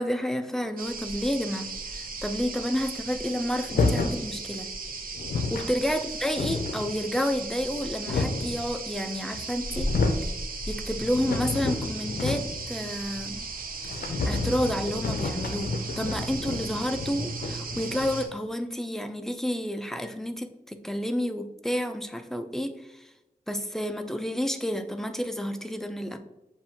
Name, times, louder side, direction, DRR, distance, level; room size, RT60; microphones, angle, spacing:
voice 1, 0.0-4.7 5.3-9.9 10.7-13.5 14.0-23.1 23.5-26.2, equal, 5° left, 8 dB, 0.4 m, -30 dB
sound 1, 0.8-18.3, right 3 dB, 75° right, 0.6 m, -36 dB
sound 2, 3.7-4.2 4.9-5.0 5.1-5.7 6.1-6.9 7.6-8.6 9.3-9.4 9.7-10.3 10.7-12.7 12.9-13.0 13.3-13.4 13.8-18.3, left 3 dB, 80° left, 0.5 m, -30 dB
7.1 x 2.5 x 2.7 m, 0.96 s
wide cardioid pair, 75°, 15 cm